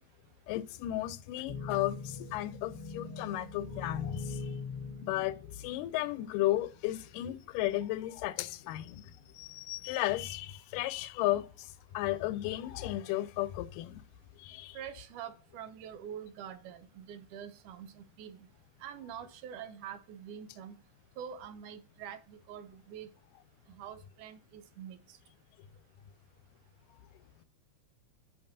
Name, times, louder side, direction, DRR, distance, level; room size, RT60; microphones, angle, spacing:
voice 1, 0.5-4.4 5.0-5.4 5.6-9.0 9.4-11.4 11.9-14.0 14.4-14.8, left 15 dB, 85° left, 2.1 m, -34 dB
sound 1, 1.4-6.2 6.9-7.0 8.3-8.8 9.4-9.9, left 4 dB, 25° right, 2.7 m, -42 dB
voice 2, 14.7-18.5 18.8-20.8 21.2-23.1 23.7-25.2, right 9 dB, 75° right, 2.1 m, -45 dB
8.8 x 5.8 x 2.7 m
omnidirectional pair, 3.7 m